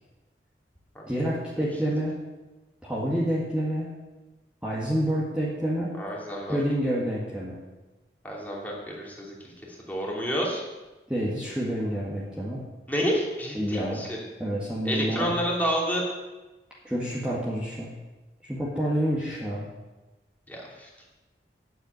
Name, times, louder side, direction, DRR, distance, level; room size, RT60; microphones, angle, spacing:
voice 1, 1.1-2.1 2.8-3.9 4.6-5.9 6.5-7.6 11.1-12.6 13.6-14.0 14.4-15.4 16.8-17.9 18.4-19.7, equal, 5° right, -7 dB, 1.8 m, -28 dB
voice 2, 5.9-6.6 8.2-10.6 12.9-14.2 14.8-16.0 20.5-20.9, equal, 10° left, -3 dB, 2.7 m, -29 dB
9.1 x 8.2 x 9.1 m, 1.1 s
head